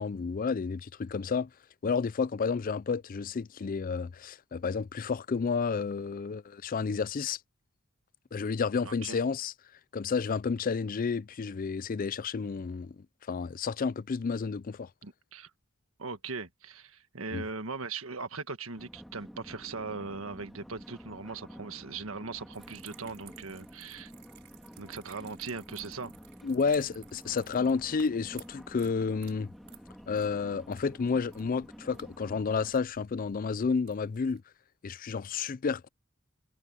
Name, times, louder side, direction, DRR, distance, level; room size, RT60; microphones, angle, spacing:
voice 1, 0.0-1.5 1.8-7.4 8.3-9.5 9.9-13.0 13.3-14.9 17.3-17.4 26.4-29.5 30.1-34.4 34.8-35.9, left 5 dB, 40° left, 0.4 m, -31 dB
voice 2, 8.8-9.2 15.0-15.5 16.0-24.1 24.8-26.1, right 4 dB, 80° right, 1.6 m, -39 dB
sound 1, 18.8-32.7, equal, ahead, 3.4 m, -50 dB
sound 2, 22.5-34.4, right 9 dB, 60° right, 7.4 m, -56 dB
head